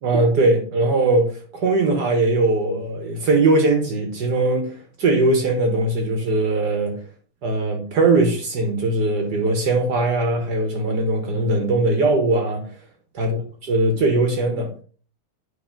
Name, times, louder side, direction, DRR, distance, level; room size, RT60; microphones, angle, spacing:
voice 1, 0.0-7.0 7.4-12.7 13.1-13.4 13.7-14.7, right 2 dB, 55° right, 1.6 m, -20 dB
9.5 x 3.6 x 3.7 m
omnidirectional pair, 2.3 m